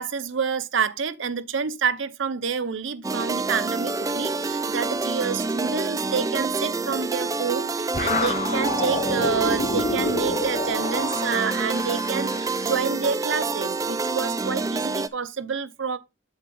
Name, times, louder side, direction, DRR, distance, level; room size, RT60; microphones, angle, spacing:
voice 1, 0.0-16.0, right 6 dB, 75° right, 0.7 m, -28 dB
sound 1, 3.0-15.1, right 3 dB, 15° right, 0.4 m, -27 dB
sound 2, 7.9-13.0, left 3 dB, 35° left, 1.0 m, -29 dB
8.1 x 7.6 x 3.8 m
head